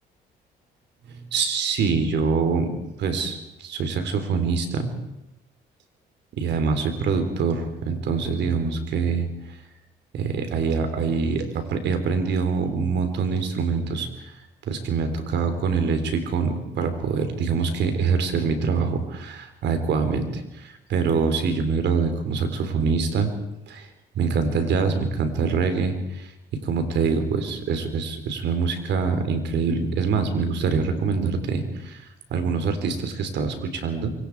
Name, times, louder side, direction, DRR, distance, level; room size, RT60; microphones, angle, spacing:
voice 1, 1.1-2.7 3.0-4.9 6.3-9.3 10.1-14.1 14.7-23.3 23.7-23.9 24.2-26.3 26.5-32.0 32.3-34.1, right 5 dB, 70° right, 8 dB, 3.7 m, -24 dB
25.0 x 23.0 x 4.8 m, 0.90 s
supercardioid pair, 70°, 19 cm